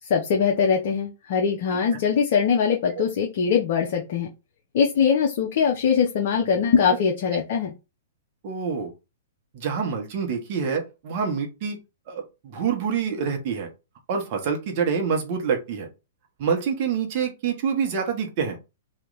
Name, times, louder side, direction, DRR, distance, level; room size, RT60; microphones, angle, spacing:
voice 1, 0.1-4.3 4.7-7.7, left 6 dB, 55° left, 2 dB, 0.8 m, -22 dB
voice 2, 8.4-8.9 9.5-11.8 12.1-13.7 14.1-15.9 16.4-18.6, right 6 dB, 45° right, 3 dB, 1.3 m, -26 dB
3.2 x 2.8 x 4.0 m, 0.27 s
hypercardioid pair, 110°, 0 cm